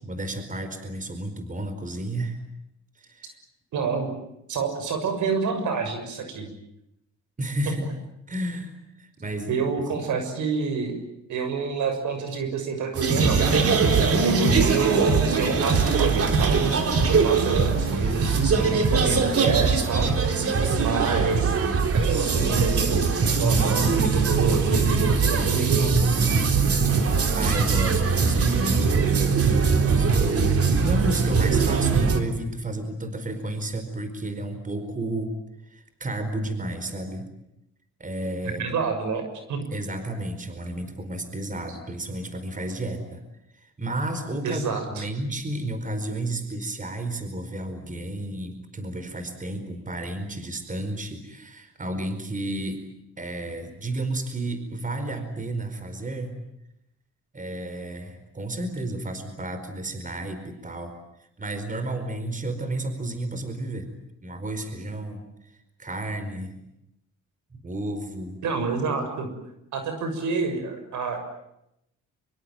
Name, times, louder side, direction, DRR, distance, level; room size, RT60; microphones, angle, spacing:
voice 1, 0.0-2.4 3.0-3.4 7.4-7.9 8.3-9.6 26.7-35.3 35.7-37.3 38.0-38.8 39.7-43.2 43.5-52.8 53.2-56.3 57.3-61.0 61.4-63.9 64.2-65.2 65.8-66.6 67.6-68.4, right 1 dB, 25° right, 9 dB, 4.8 m, -32 dB
voice 2, 3.7-4.1 4.5-6.5 9.5-10.9 11.3-13.8 14.2-16.7 17.1-20.1 20.8-21.5 21.9-25.9 38.6-39.6 44.4-45.0 68.4-69.3 69.7-71.2, right 5 dB, 75° right, 7 dB, 6.8 m, -28 dB
sound 1, 13.0-32.2, right 4 dB, 50° right, 3.8 m, -21 dB
25.5 x 24.0 x 9.2 m, 0.81 s
cardioid pair, 90°, 30 cm